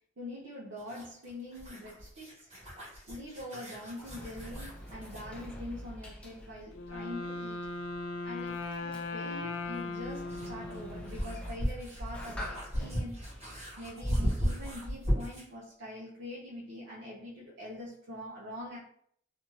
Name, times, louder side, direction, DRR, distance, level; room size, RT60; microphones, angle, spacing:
voice 1, 0.2-2.5 3.1-7.7 8.2-13.2 13.8-18.8, left 1 dB, 65° right, -6 dB, 0.7 m, -44 dB
sound 1, 0.8-5.3 7.6-7.7 9.7-15.5, equal, 35° right, 1.2 m, -36 dB
Sliding door, 3.6-14.9, equal, 5° left, 0.4 m, -47 dB
Wind instrument woodwind instrument, 6.7-11.6, left 3 dB, 70° left, 0.4 m, -38 dB
2.6 x 2.4 x 3.0 m, 0.64 s
head